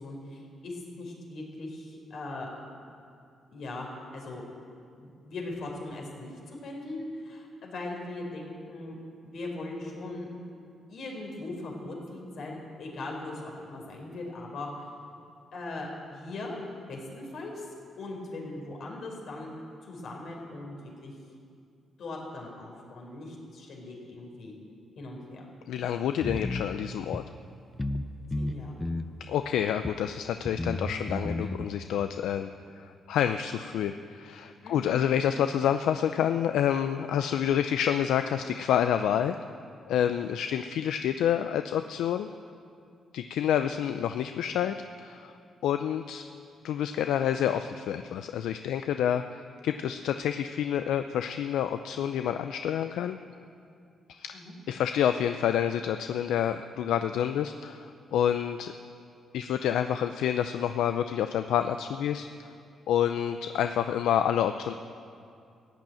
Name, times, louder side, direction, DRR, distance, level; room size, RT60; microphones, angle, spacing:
voice 1, 0.0-2.5 3.5-3.9 4.1-4.4 5.0-9.0 9.2-10.3 10.9-14.9 15.5-16.6 16.9-17.7 18.0-19.5 19.8-21.1 22.0-24.5 25.0-25.4 28.4-28.9 34.6-35.0 54.3-54.5, left 2 dB, 65° left, 0 dB, 4.1 m, -39 dB
voice 2, 25.7-27.2 29.3-32.5 32.8-39.4 39.9-42.3 43.1-45.3 45.6-46.3 46.6-53.2 54.1-54.4 54.7-58.7 59.3-62.5 62.9-64.7, left 9 dB, 90° left, 8 dB, 0.4 m, -28 dB
sound 1, 26.2-26.7 27.1-27.2 27.8-28.1 28.3-29.1 29.8-29.9 30.4-31.7, left 1 dB, 15° left, 0.7 m, -32 dB
15.5 x 9.2 x 8.9 m, 2.4 s
cardioid pair, 100°, 0 cm